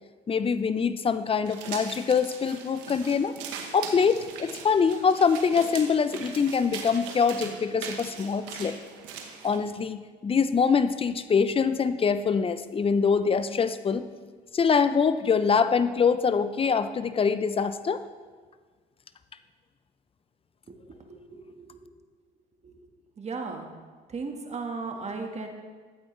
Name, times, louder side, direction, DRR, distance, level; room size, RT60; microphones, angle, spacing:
voice 1, 0.3-3.3 3.7-8.8 9.4-14.0 14.5-18.0, left 6 dB, 30° left, 12 dB, 0.6 m, -24 dB
sound 1, 1.5-9.6, right 6 dB, 90° right, 1.2 m, -40 dB
voice 2, 20.7-21.9 22.6-22.9 23.2-23.7 24.1-25.5, right 4 dB, 35° right, 3 dB, 1.6 m, -37 dB
13.0 x 8.6 x 3.3 m, 1.5 s
supercardioid pair, 80°, 19 cm